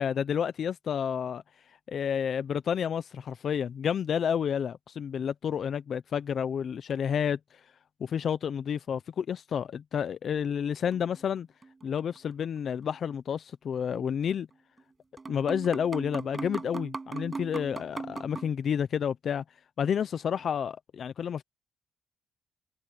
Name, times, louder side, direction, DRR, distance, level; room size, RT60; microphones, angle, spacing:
voice 1, 0.0-1.4 1.9-7.4 8.0-11.5 11.8-14.5 15.3-19.4 19.8-21.4, left 8 dB, 55° left, 0.8 m, -30 dB
sound 1, 10.9-12.2 12.4-12.5 13.9-14.1 14.8-14.9 15.2-18.5, right 3 dB, 25° right, 6.4 m, -39 dB
cardioid pair, 90°, 0 cm